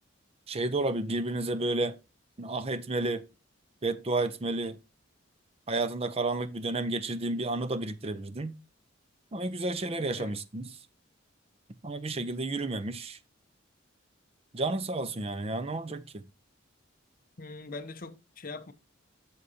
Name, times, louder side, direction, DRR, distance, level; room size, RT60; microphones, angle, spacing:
voice 1, 0.5-1.9 2.4-3.2 3.8-4.8 5.7-8.5 9.3-10.6 11.8-13.2 14.5-16.3, right 2 dB, 30° right, 0.5 m, -31 dB
voice 2, 17.4-18.7, left 3 dB, 45° left, 0.7 m, -42 dB
9.8 x 6.6 x 2.8 m
head